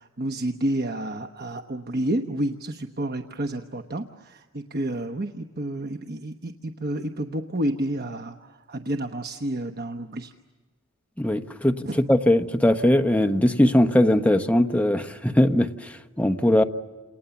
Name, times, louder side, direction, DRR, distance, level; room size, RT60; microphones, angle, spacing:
voice 1, 0.2-8.3 8.7-10.3 11.8-11.9, right 1 dB, 50° right, 5 dB, 1.1 m, -30 dB
voice 2, 11.2-16.6, left 1 dB, 5° left, 6 dB, 1.1 m, -20 dB
30.0 x 28.0 x 7.1 m, 1.4 s
head